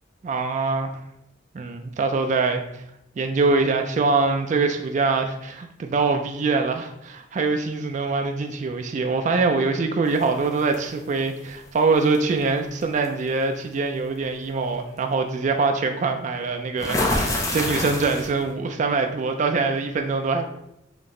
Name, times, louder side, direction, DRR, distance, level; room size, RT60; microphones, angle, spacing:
voice 1, 0.2-0.9 1.5-2.6 3.2-20.5, right 4 dB, 40° right, 5 dB, 0.3 m, -23 dB
sound 1, 10.2-10.8 12.1-12.3 12.8-13.1 16.8-18.5, left 1 dB, 15° left, 0.6 m, -26 dB
3.5 x 2.8 x 3.7 m, 0.82 s
head